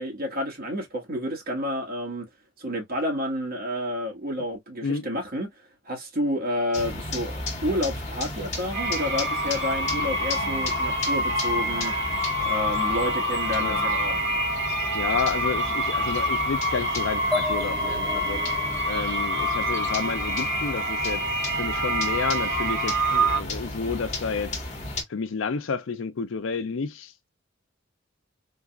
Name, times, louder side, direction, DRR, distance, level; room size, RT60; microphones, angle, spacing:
voice 1, 0.0-2.3 2.6-5.5 5.9-7.3 7.6-11.9 12.4-14.2, left 1 dB, 50° right, 1.7 m, -30 dB
sound 1, 6.7-25.0, left 2 dB, 35° left, 1.1 m, -35 dB
sound 2, 8.7-23.4, equal, 75° right, 2.0 m, -26 dB
voice 2, 13.5-13.8 14.9-18.4 18.9-21.2 21.5-24.6 25.1-27.3, left 5 dB, 80° left, 0.5 m, -30 dB
sound 3, 17.3-21.0, left 3 dB, ahead, 0.4 m, -36 dB
3.8 x 2.4 x 2.4 m
head